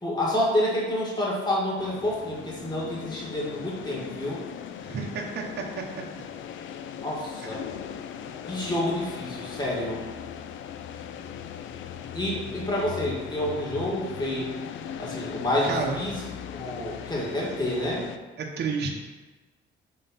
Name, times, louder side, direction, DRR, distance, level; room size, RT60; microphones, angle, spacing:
voice 1, 0.0-4.4 7.0-7.6 8.5-10.0 12.1-14.5 15.0-16.1 16.5-18.1, left 1 dB, 20° left, -5 dB, 2.0 m, -28 dB
sound 1, 1.8-18.2, left 8 dB, 75° left, 0.4 m, -39 dB
voice 2, 4.8-5.8 7.4-7.7 15.6-16.0 16.9-17.1 18.4-18.9, right 5 dB, 55° right, 0 dB, 0.9 m, -31 dB
5.5 x 3.8 x 5.5 m, 1.3 s
cardioid pair, 90°, 20 cm